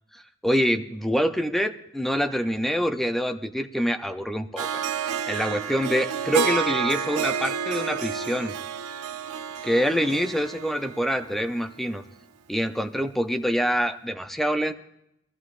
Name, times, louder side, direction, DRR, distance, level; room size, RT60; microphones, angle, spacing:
voice 1, 0.1-4.8 5.3-8.5 9.6-12.0 12.5-14.7, equal, ahead, 8 dB, 0.4 m, -26 dB
Harp, 4.6-11.7, right 7 dB, 90° right, 0.7 m, -30 dB
21.0 x 13.5 x 2.5 m, 0.82 s
head